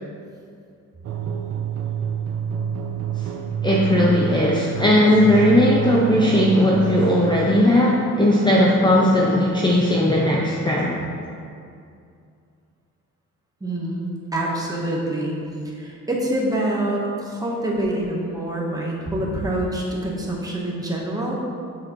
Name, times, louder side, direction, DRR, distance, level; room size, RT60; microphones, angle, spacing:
sound 1, 1.0-7.5, right 8 dB, 50° right, 0.4 m, -28 dB
voice 1, 3.6-11.0, left 1 dB, 15° left, -3 dB, 0.5 m, -17 dB
voice 2, 13.6-14.0 14.3-15.3 15.6-21.3, right 1 dB, 10° right, -3 dB, 1.0 m, -26 dB
7.7 x 6.5 x 3.0 m, 2.4 s
cardioid pair, 150°, 30 cm